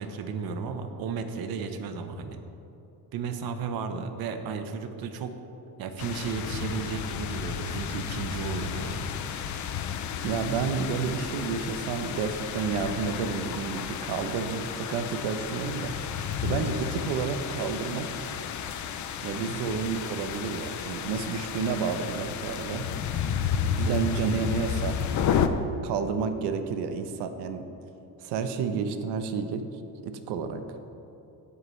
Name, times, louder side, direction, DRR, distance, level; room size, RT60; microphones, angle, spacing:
voice 1, 0.0-2.4 3.1-5.3 5.8-9.1 23.8-24.0, right 5 dB, 65° right, 7 dB, 1.1 m, -34 dB
sound 1, 6.0-25.5, left 8 dB, 45° left, 0.6 m, -32 dB
voice 2, 10.2-15.9 16.4-18.1 19.2-22.8 23.8-25.0 25.8-27.6 28.2-29.6 30.0-30.6, right 6 dB, 85° right, 8 dB, 1.0 m, -30 dB
17.0 x 8.2 x 3.3 m, 3.0 s
cardioid pair, 155°, 40 cm